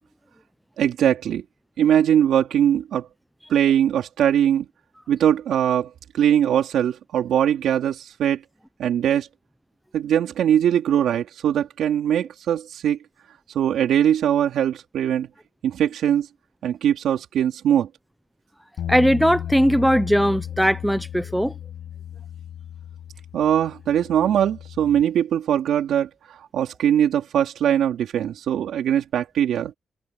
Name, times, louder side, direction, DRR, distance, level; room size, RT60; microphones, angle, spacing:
voice 1, 0.8-1.4 1.8-3.1 3.5-4.7 5.1-5.9 6.1-8.4 8.8-9.3 9.9-13.0 13.5-15.3 15.6-16.3 16.6-17.9 23.3-26.1 26.5-29.7, right 10 dB, 90° right, 3.6 m, -21 dB
Bass guitar, 18.8-25.0, left 10 dB, 75° left, 7.4 m, -34 dB
voice 2, 18.9-21.5, equal, ahead, 0.5 m, -19 dB
wide cardioid pair, 175°, 0 cm